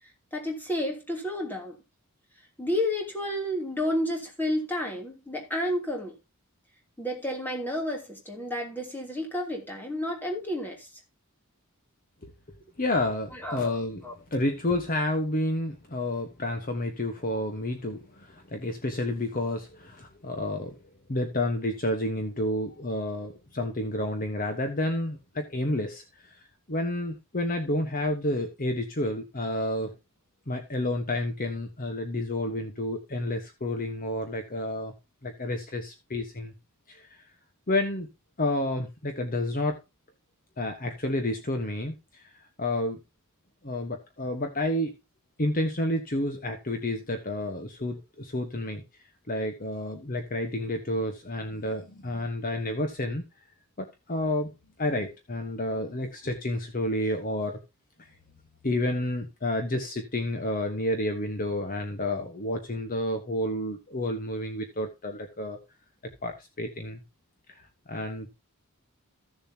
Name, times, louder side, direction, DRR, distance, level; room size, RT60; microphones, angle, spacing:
voice 1, 0.3-1.8 2.6-6.2 7.0-10.9 13.3-13.7 14.0-14.1, left 1 dB, 10° left, 3.0 m, -31 dB
voice 2, 12.8-14.0 14.3-20.8 21.1-29.9 30.5-34.9 35.2-36.5 36.9-37.2 37.7-38.1 38.4-39.8 40.6-43.0 43.6-44.9 45.4-48.8 49.3-53.2 53.8-54.5 54.8-57.6 58.6-65.6 66.2-67.0 67.5-68.3, left 1 dB, 40° left, 1.2 m, -30 dB
15.0 x 7.1 x 2.8 m
head